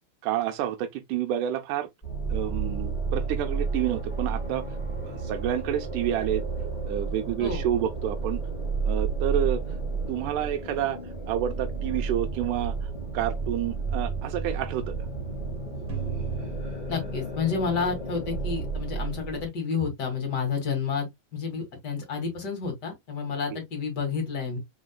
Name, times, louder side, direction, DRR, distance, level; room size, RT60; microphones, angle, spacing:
voice 1, 0.2-1.9 2.3-4.7 5.0-6.4 6.9-8.4 8.9-9.6 10.1-11.0 11.3-12.7 13.1-15.1 23.5-23.6, right 11 dB, 90° right, 1.7 m, -29 dB
ab moonlight atmos, 2.0-19.5, right 4 dB, 15° left, 2.0 m, -31 dB
sound 1, 15.9-18.1, right 12 dB, 45° right, 1.7 m, -38 dB
voice 2, 16.9-21.1 21.3-24.6, left 5 dB, 35° left, 2.1 m, -30 dB
5.1 x 4.7 x 2.2 m
omnidirectional pair, 4.4 m